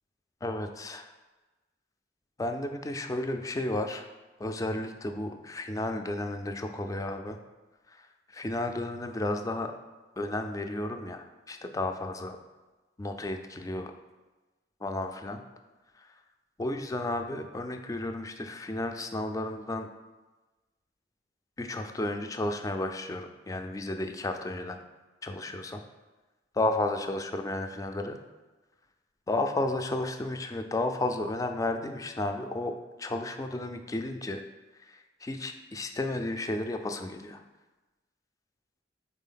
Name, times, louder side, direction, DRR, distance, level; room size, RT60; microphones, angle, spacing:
voice 1, 0.4-1.1 2.4-4.1 4.4-7.4 7.9-9.7 10.2-12.4 13.0-13.9 14.8-15.4 16.0-16.1 16.6-19.9 21.6-24.8 25.2-25.8 26.5-28.2 29.3-32.7 33.0-34.4 34.8-37.4, left 2 dB, 20° left, 6 dB, 0.4 m, -33 dB
4.1 x 4.1 x 5.6 m, 1.2 s
head